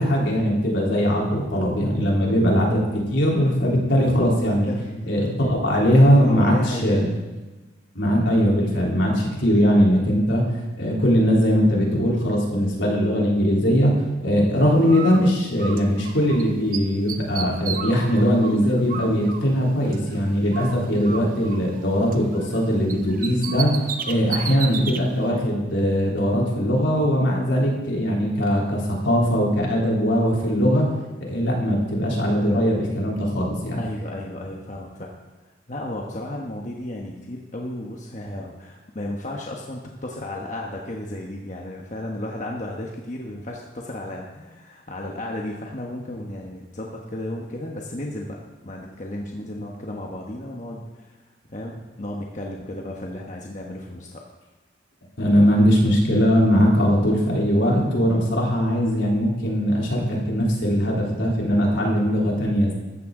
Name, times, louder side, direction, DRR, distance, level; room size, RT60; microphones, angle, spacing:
voice 1, 0.0-2.8 3.1-4.7 5.1-7.1 8.0-10.4 10.8-13.9 14.2-23.7 24.1-30.9 31.3-33.8 55.2-62.7, equal, 75° left, -3 dB, 3.6 m, -20 dB
voice 2, 4.7-5.4 6.2-7.1 20.6-20.9 33.8-35.1 35.7-48.4 48.6-51.2 51.5-54.2 59.2-59.3, left 1 dB, 40° left, -1 dB, 1.2 m, -34 dB
Bird, 14.9-16.4 16.7-20.2 20.5-22.6 22.9-25.0, right 6 dB, 45° right, 0.9 m, -34 dB
14.5 x 13.5 x 3.8 m, 1.2 s
head